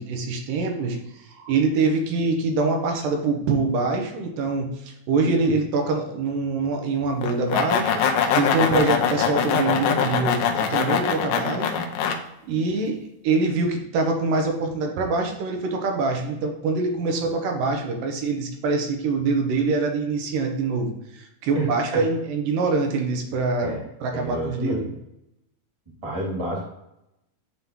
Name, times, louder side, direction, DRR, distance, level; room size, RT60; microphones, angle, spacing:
voice 1, 0.0-8.1 8.4-11.8 12.4-13.0 13.2-23.7 24.0-24.9, right 3 dB, 90° right, 3 dB, 2.6 m, -24 dB
voice 2, 5.2-5.5 8.0-8.1 21.5-22.0 23.6-23.9 24.1-24.9 26.0-26.6, right 1 dB, 10° right, -5 dB, 1.9 m, -29 dB
sound 1, 7.2-12.2, left 7 dB, 85° left, 2.2 m, -23 dB
9.3 x 3.7 x 2.9 m, 0.86 s
omnidirectional pair, 3.8 m